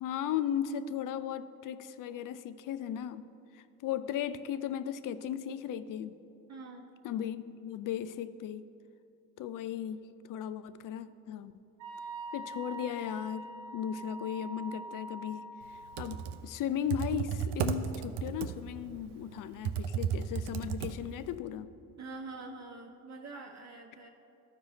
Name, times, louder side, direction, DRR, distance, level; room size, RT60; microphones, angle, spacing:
voice 1, 0.0-3.2 3.5-6.1 7.0-8.6 9.4-11.5 12.3-21.7, left 9 dB, 45° left, 14 dB, 0.5 m, -36 dB
voice 2, 6.5-6.9 22.0-24.1, right 3 dB, 35° right, 2 dB, 1.0 m, -45 dB
Wind instrument woodwind instrument, 11.8-16.2, right 1 dB, 85° right, 1.1 m, -44 dB
Computer keyboard, 15.8-21.4, right 8 dB, 65° right, 0.6 m, -35 dB
13.0 x 4.7 x 4.0 m, 2.7 s
hypercardioid pair, 55°, 45 cm